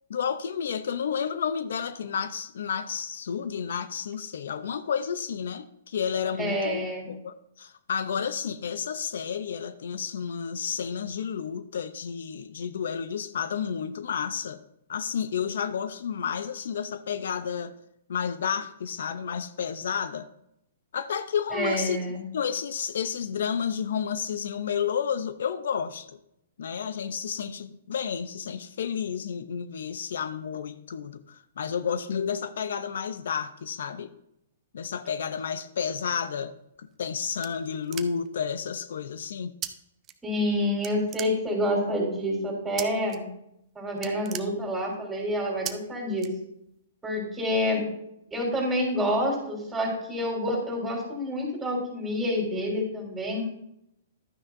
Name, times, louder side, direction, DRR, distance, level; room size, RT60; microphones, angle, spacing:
voice 1, 0.1-14.6 14.9-17.7 18.1-20.3 20.9-22.0 22.3-26.2 26.6-34.1 34.7-36.5 36.8-39.5, left 7 dB, 70° left, 12 dB, 0.5 m, -31 dB
voice 2, 6.4-7.1 21.5-22.2 40.2-43.2 43.8-46.3 47.0-47.8 48.3-53.5, equal, 10° right, -2 dB, 3.9 m, -28 dB
sound 1, 36.7-38.4 39.6-39.7 40.0-40.6 40.8-41.8 42.8-43.2 43.5-43.6 43.9-45.1 45.6-45.7 46.2-46.8, right 11 dB, 25° right, 0.7 m, -38 dB
12.0 x 9.5 x 2.6 m, 0.78 s
hypercardioid pair, 130°, 0 cm